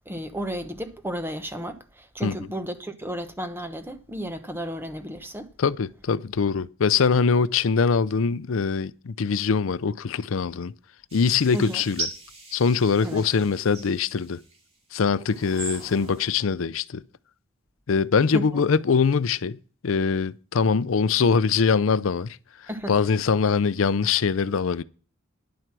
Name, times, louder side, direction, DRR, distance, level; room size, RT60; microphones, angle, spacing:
voice 1, 0.1-5.5 11.5-11.8 13.0-13.2 18.3-18.6 22.7-23.0, equal, 10° right, 1.0 m, -33 dB
voice 2, 5.6-10.7 11.1-12.1 12.5-14.4 14.9-17.0 17.9-19.6 19.8-22.4 22.9-24.8, left 5 dB, 65° left, 0.5 m, -23 dB
sound 1, 11.1-14.6 15.2-16.3, right 2 dB, 30° right, 2.5 m, -38 dB
10.5 x 7.8 x 6.1 m
head